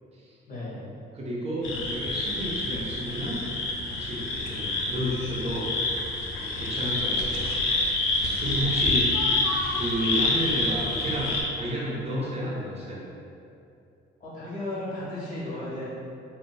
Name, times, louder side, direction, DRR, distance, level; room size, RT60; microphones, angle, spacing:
voice 1, 0.5-0.9 14.2-15.9, left 1 dB, 40° left, -8 dB, 1.3 m, -34 dB
voice 2, 1.1-5.7 6.3-7.5 8.4-9.2 9.7-13.0, right 1 dB, 30° right, -5 dB, 0.7 m, -31 dB
sound 1, 1.6-11.4, left 2 dB, 90° left, 0.4 m, -27 dB
3.9 x 2.1 x 2.2 m, 2.6 s
cardioid pair, 90°, 20 cm